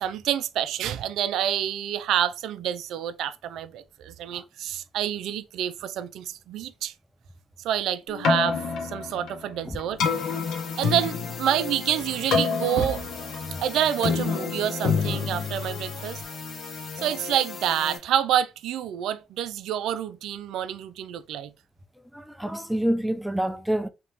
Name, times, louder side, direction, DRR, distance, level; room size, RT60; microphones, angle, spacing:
voice 1, 0.0-6.9 7.6-10.0 10.8-13.0 13.6-16.2 17.0-21.5, right 10 dB, 75° right, 0.4 m, -28 dB
Keyboard (musical), 8.1-16.2, left 5 dB, 70° left, 0.9 m, -28 dB
sound 1, 10.0-18.0, left 4 dB, 55° left, 1.2 m, -38 dB
voice 2, 22.1-23.9, right 1 dB, 5° right, 0.5 m, -27 dB
3.4 x 2.9 x 2.9 m
supercardioid pair, 70°, 0 cm